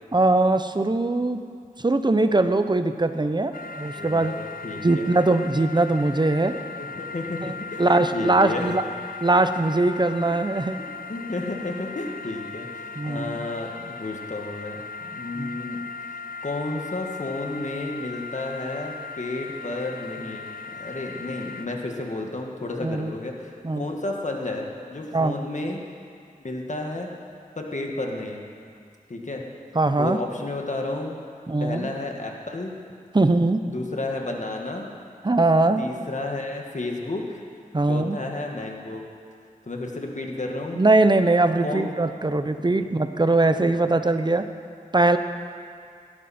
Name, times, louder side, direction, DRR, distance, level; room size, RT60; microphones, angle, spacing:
voice 1, 0.1-1.4 1.8-4.3 4.8-6.6 7.4-7.5 7.8-8.8 9.2-10.8 13.0-13.4 15.4-15.6 22.8-23.1 23.6-23.8 25.1-25.3 29.7-30.2 31.5-31.9 33.1-33.6 35.2-35.8 37.7-38.2 40.8-44.5 44.9-45.2, right 2 dB, 30° right, 9 dB, 0.7 m, -21 dB
sound 1, 3.5-21.7, left 4 dB, 75° left, 0.6 m, -38 dB
voice 2, 4.0-5.1 6.8-8.7 10.8-14.8 15.1-15.8 16.4-25.8 26.4-27.1 27.6-28.4 29.1-29.4 30.0-31.2 31.6-32.7 33.6-34.9 35.8-37.4 37.9-39.1 39.6-40.8 41.6-41.9 42.6-42.7 43.5-43.8, left 2 dB, 55° left, 1 dB, 1.8 m, -32 dB
17.0 x 12.5 x 4.4 m, 2.3 s
wide cardioid pair, 50°, 15 cm